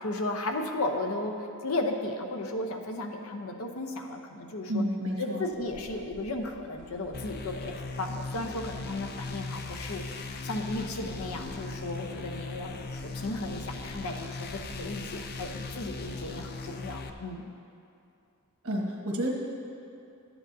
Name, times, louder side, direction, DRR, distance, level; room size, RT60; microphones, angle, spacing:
voice 1, 0.0-4.8 5.2-17.5, left 2 dB, 80° left, 3 dB, 0.8 m, -35 dB
voice 2, 4.7-5.4 18.6-19.3, equal, 70° right, -1 dB, 1.3 m, -30 dB
sound 1, 5.5-16.5, right 1 dB, 50° right, 0.8 m, -51 dB
sound 2, 7.1-17.1, left 3 dB, 45° left, 0.4 m, -39 dB
13.0 x 8.8 x 2.7 m, 2.6 s
head